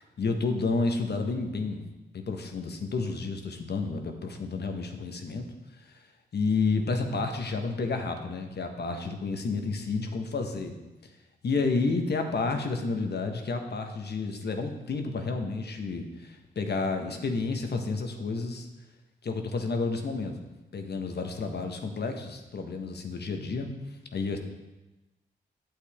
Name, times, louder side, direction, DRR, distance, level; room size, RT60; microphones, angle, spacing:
voice 1, 0.2-1.8 2.1-5.5 5.8-5.9 6.3-10.7 11.4-18.7 19.2-20.3 20.7-23.7 24.1-24.4, left 4 dB, 55° left, 5 dB, 1.3 m, -30 dB
8.8 x 7.8 x 3.6 m, 1.1 s
hypercardioid pair, 40°, 21 cm